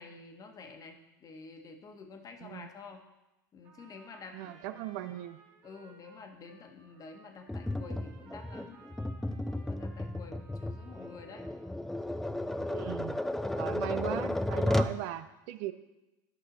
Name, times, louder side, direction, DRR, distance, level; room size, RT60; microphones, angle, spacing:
voice 1, 0.0-3.0 3.5-5.0 5.6-8.8 9.5-11.5 13.4-13.8, left 4 dB, 35° left, 4 dB, 1.3 m, -49 dB
Trumpet, 3.6-11.7, right 4 dB, 45° right, 1.7 m, -59 dB
voice 2, 4.3-5.4 12.7-13.2 13.5-15.7, right 13 dB, 65° right, 11 dB, 0.6 m, -38 dB
Tap, 7.5-15.0, left 1 dB, 5° left, 0.4 m, -33 dB
11.5 x 5.3 x 4.1 m, 0.99 s
hypercardioid pair, 100°, 11 cm